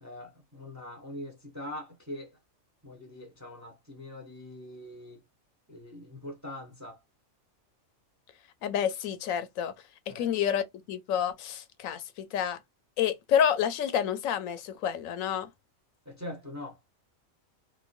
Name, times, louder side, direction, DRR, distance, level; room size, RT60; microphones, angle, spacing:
voice 1, 0.0-2.4 2.8-5.2 5.7-7.0 10.1-10.3 16.1-16.8, left 1 dB, 20° right, 0.6 m, -43 dB
voice 2, 8.6-9.7 10.1-12.6 13.0-15.5, left 9 dB, 80° left, 1.0 m, -29 dB
3.0 x 2.2 x 2.4 m
omnidirectional pair, 1.4 m